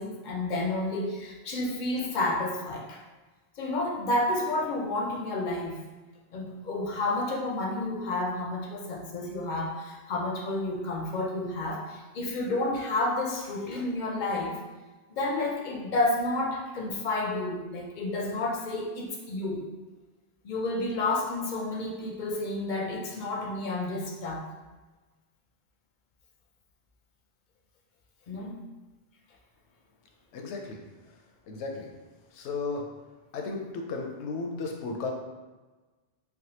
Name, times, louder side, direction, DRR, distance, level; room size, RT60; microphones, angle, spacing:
voice 1, 0.0-3.0 3.6-5.8 6.3-14.6 15.1-19.6 20.4-24.5 28.3-28.6, left 2 dB, 60° left, 0 dB, 0.5 m, -30 dB
voice 2, 30.3-30.8 31.5-31.9 32.3-32.9 33.3-35.1, left 3 dB, 85° left, 2 dB, 0.9 m, -34 dB
3.3 x 2.3 x 2.8 m, 1.2 s
omnidirectional pair, 1.1 m